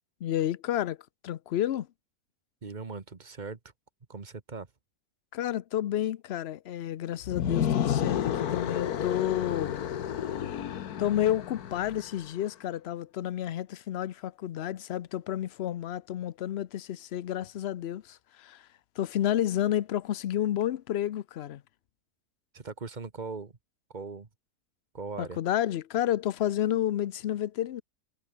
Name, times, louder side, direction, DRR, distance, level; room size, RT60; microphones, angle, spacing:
voice 1, 0.2-1.0 1.2-1.9 5.3-9.8 11.0-18.7 19.0-21.6 25.2-27.8, left 11 dB, 60° left, 0.7 m, -30 dB
voice 2, 2.6-3.6 4.1-4.7 22.5-23.5 23.9-24.3 24.9-25.4, right 4 dB, 30° right, 1.5 m, -39 dB
sound 1, 7.2-12.3, left 9 dB, 85° left, 1.6 m, -31 dB
omnidirectional pair, 1.6 m